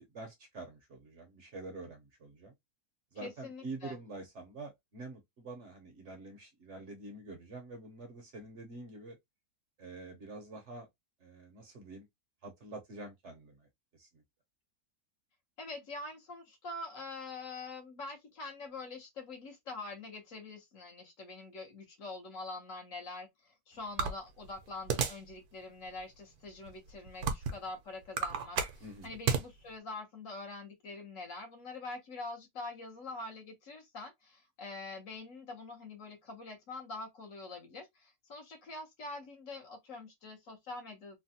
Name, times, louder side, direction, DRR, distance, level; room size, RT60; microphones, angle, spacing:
voice 1, 0.0-2.5 3.1-9.2 9.8-10.9 11.2-12.1 12.4-14.2 28.8-29.2, right 3 dB, 55° right, 0.9 m, -47 dB
voice 2, 3.2-4.0 15.6-41.2, left 3 dB, 60° left, 1.2 m, -45 dB
sound 1, 24.0-25.3 25.9-26.0 26.7-27.7 28.0-29.5, right 6 dB, 75° right, 1.1 m, -32 dB
3.3 x 2.2 x 2.7 m
omnidirectional pair, 1.7 m